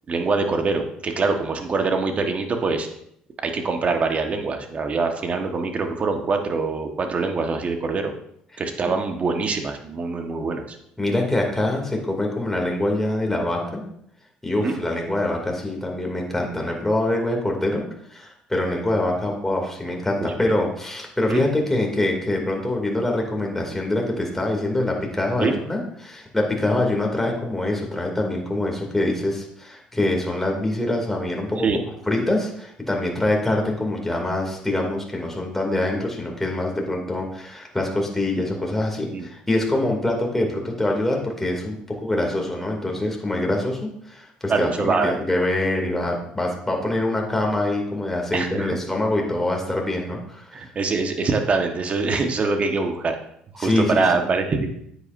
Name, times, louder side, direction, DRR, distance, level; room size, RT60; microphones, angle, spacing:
voice 1, 0.1-2.9 3.4-8.1 8.6-10.8 14.6-14.8 20.2-20.3 21.3-21.4 25.4-25.5 31.6-31.8 39.1-39.2 44.5-45.2 48.3-48.7 50.5-53.2 53.6-54.7, right 4 dB, 40° right, 5 dB, 1.3 m, -24 dB
voice 2, 11.0-13.8 14.4-17.8 18.1-31.7 32.1-50.7 53.6-54.0, left 1 dB, 10° left, 0 dB, 2.5 m, -24 dB
9.5 x 8.3 x 2.6 m, 0.71 s
supercardioid pair, 75°, 3 cm